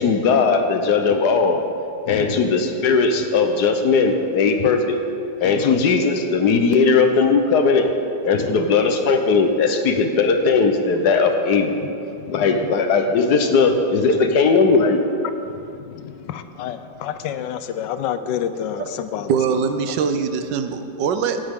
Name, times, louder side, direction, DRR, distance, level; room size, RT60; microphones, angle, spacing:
voice 1, 0.0-1.6 2.1-5.0 5.4-7.9 8.2-11.7 12.3-15.0, left 4 dB, 70° left, 6 dB, 1.4 m, -18 dB
voice 2, 2.1-2.5 4.6-4.8 5.4-5.8 8.3-8.7 11.8-11.9 12.2-12.7 14.2-14.3 15.5-19.3, left 9 dB, 90° left, 10 dB, 1.3 m, -30 dB
voice 3, 19.3-21.4, right 6 dB, 90° right, 8 dB, 1.4 m, -22 dB
17.0 x 9.0 x 3.6 m, 2.7 s
omnidirectional pair, 1.9 m